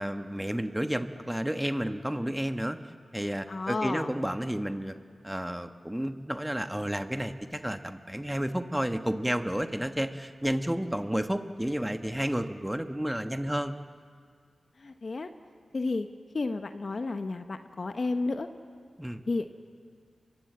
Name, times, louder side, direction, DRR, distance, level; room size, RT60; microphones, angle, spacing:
voice 1, 0.0-2.8 3.1-4.9 5.2-13.7 19.0-19.2, equal, 10° right, 8 dB, 1.2 m, -31 dB
voice 2, 3.5-4.1 14.8-15.3 15.7-16.1 16.3-18.5 19.3-19.5, left 3 dB, 55° left, 8 dB, 1.0 m, -31 dB
24.0 x 20.5 x 7.8 m, 2.1 s
cardioid pair, 40°, 0 cm